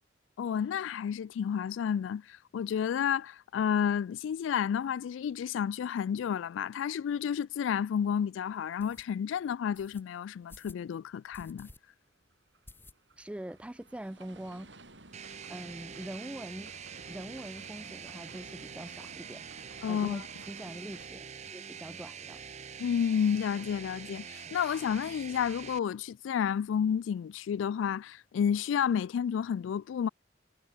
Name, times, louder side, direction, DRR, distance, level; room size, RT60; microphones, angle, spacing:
voice 1, 0.4-11.7 19.8-20.2 22.8-30.1, left 8 dB, 85° left, 0.3 m, -31 dB
sound 1, 8.8-9.1 9.7-10.0 10.5-10.8 11.3-11.8 12.1-12.2 12.7-13.3 13.7-13.8 14.0-14.1 14.4-15.0, left 2 dB, 10° left, 1.1 m, -53 dB
sound 2, 11.8-21.1, right 2 dB, 70° right, 5.5 m, -54 dB
voice 2, 13.2-14.8 15.2-16.7 17.1-19.4 19.9-21.3 21.5-22.4, right 1 dB, 5° right, 0.3 m, -43 dB
sound 3, 15.1-25.8, right 7 dB, 40° right, 0.7 m, -45 dB
head